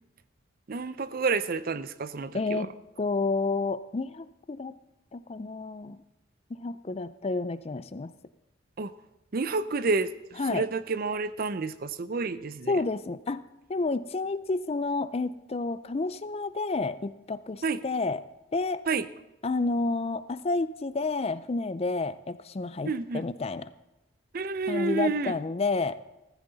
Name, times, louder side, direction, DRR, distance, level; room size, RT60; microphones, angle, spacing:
voice 1, 0.7-2.7 8.8-8.9 9.3-12.8 17.6-17.8 18.9-19.1 22.8-23.2 24.3-25.4, right 4 dB, 50° right, 15 dB, 0.5 m, -29 dB
voice 2, 2.3-2.7 3.0-4.7 5.1-6.0 6.5-8.1 10.4-10.7 12.7-13.4 13.7-18.2 18.5-18.8 19.4-23.7 24.7-26.0, left 3 dB, 30° left, 15 dB, 0.4 m, -30 dB
15.0 x 14.0 x 4.0 m, 0.93 s
head